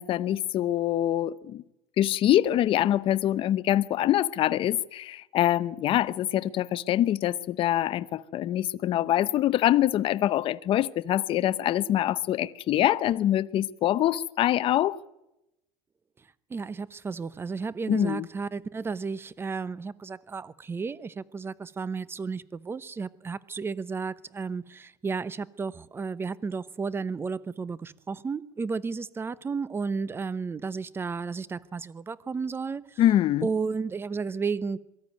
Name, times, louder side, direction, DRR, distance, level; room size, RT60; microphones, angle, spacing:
voice 1, 0.0-1.6 2.0-15.0 17.9-18.3 33.0-33.5, left 12 dB, 45° left, 0.7 m, -24 dB
voice 2, 16.5-33.0 33.4-34.8, right 5 dB, 20° right, 0.8 m, -33 dB
23.0 x 14.0 x 9.4 m
cardioid pair, 130°, 12 cm